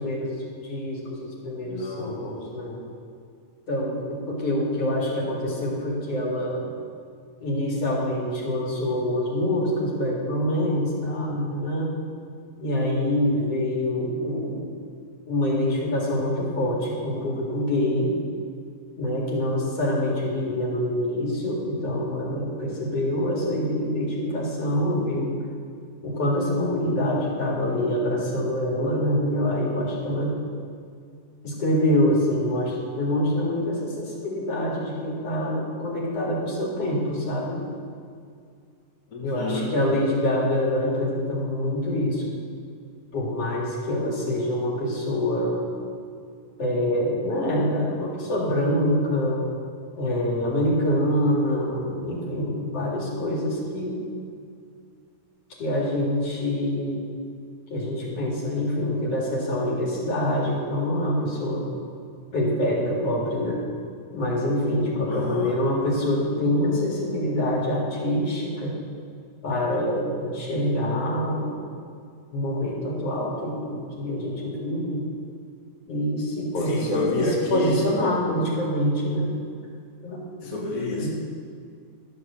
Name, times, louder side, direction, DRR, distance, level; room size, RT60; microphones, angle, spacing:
voice 1, 0.0-2.8 3.7-6.7 7.4-11.9 12.6-14.6 15.3-18.1 19.0-25.3 26.0-30.4 31.4-37.6 39.2-42.4 43.1-45.7 46.6-49.4 50.0-54.0 55.6-57.0 57.7-61.7 62.3-63.6 64.1-68.7 69.4-71.6 72.3-75.0 75.9-79.3 80.0-80.5 80.9-81.1, left 1 dB, 55° left, -3 dB, 3.2 m, -25 dB
voice 2, 1.6-2.3 39.1-39.7 65.0-65.6 76.6-77.9 80.4-81.1, left 3 dB, 35° left, -4 dB, 1.8 m, -29 dB
12.5 x 6.6 x 7.0 m, 2.2 s
omnidirectional pair, 3.4 m